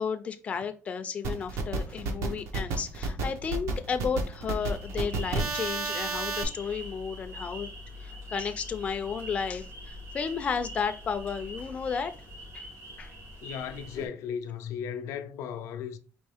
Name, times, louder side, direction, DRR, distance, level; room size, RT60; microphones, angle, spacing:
voice 1, 0.0-7.7 8.0-12.1 12.5-12.7 13.0-13.1, left 6 dB, 25° left, 0.3 m, -33 dB
sound 1, 1.2-6.4, right 4 dB, 70° right, 0.8 m, -31 dB
sound 2, 4.6-14.1, equal, 90° right, 2.4 m, -43 dB
voice 2, 13.4-16.0, left 8 dB, 90° left, 0.5 m, -36 dB
4.4 x 3.0 x 3.4 m
cardioid pair, 175°, 5 cm